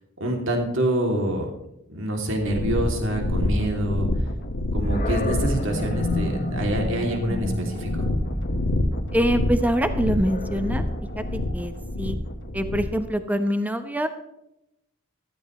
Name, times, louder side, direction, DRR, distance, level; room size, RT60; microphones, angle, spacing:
voice 1, 0.2-1.5 1.9-4.1 4.7-8.0, right 1 dB, 65° right, 2 dB, 2.9 m, -26 dB
sound 1, 2.4-13.0, left 1 dB, 60° left, 1.7 m, -28 dB
Animal, 4.8-11.9, left 1 dB, 40° left, 2.2 m, -31 dB
voice 2, 9.1-10.8 11.2-12.2 12.5-14.1, equal, 10° right, 8 dB, 1.0 m, -24 dB
15.0 x 14.0 x 3.2 m, 0.85 s
head